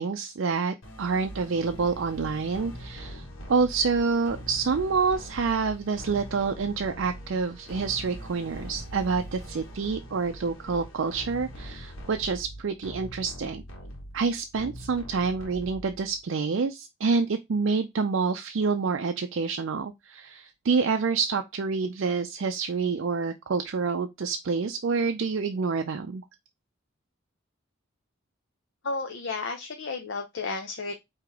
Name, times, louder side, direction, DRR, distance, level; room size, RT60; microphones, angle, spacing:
voice 1, 0.0-13.6 14.1-26.2, right 4 dB, 65° right, 0.4 m, -27 dB
sound 1, 0.8-16.2, equal, 80° left, 1.4 m, -42 dB
voice 2, 28.8-30.9, left 3 dB, 60° left, 0.6 m, -32 dB
4.8 x 2.9 x 3.5 m
head